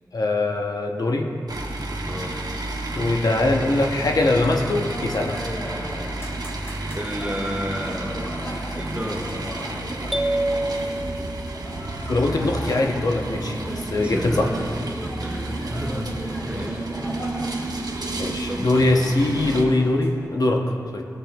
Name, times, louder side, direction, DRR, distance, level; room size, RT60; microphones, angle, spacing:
voice 1, 0.1-1.3 2.9-5.5 12.1-14.5 18.2-20.6 20.9-21.0, left 2 dB, 65° left, 2 dB, 0.7 m, -22 dB
sound 1, 1.5-19.6, right 2 dB, 70° right, 0.8 m, -31 dB
voice 2, 1.7-2.4 6.9-8.1 8.7-9.4 14.0-14.7 15.2-16.1 16.4-17.1 17.7-18.1 18.5-18.7, equal, 20° right, -2 dB, 1.3 m, -32 dB
sound 2, 4.6-20.3, left 1 dB, 35° left, 2.1 m, -39 dB
sound 3, 10.1-12.0, right 1 dB, ahead, 0.5 m, -27 dB
14.5 x 7.4 x 2.2 m, 2.4 s
wide cardioid pair, 60°, 7 cm